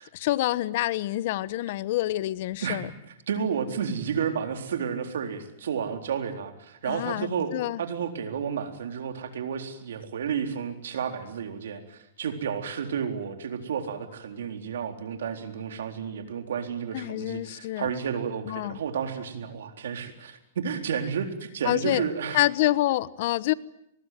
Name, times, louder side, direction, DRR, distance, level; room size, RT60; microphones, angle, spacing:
voice 1, 0.1-2.9 6.9-7.8 16.9-17.9 18.4-18.8 21.6-22.0 22.3-23.5, left 16 dB, 60° left, 18 dB, 1.0 m, -27 dB
voice 2, 2.6-22.4, right 7 dB, 85° right, 6 dB, 4.0 m, -32 dB
24.0 x 20.5 x 9.4 m, 0.80 s
hypercardioid pair, 135°, 0 cm